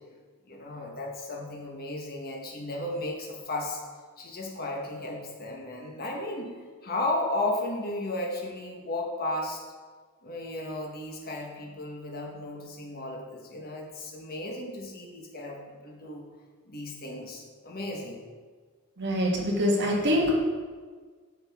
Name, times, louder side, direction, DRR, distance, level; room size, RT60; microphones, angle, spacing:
voice 1, 0.5-3.8 4.2-9.6 10.2-16.2 16.7-18.2, left 2 dB, 45° left, 0 dB, 1.4 m, -34 dB
voice 2, 19.0-20.4, equal, 55° right, -2 dB, 1.6 m, -24 dB
9.3 x 6.7 x 3.7 m, 1.5 s
head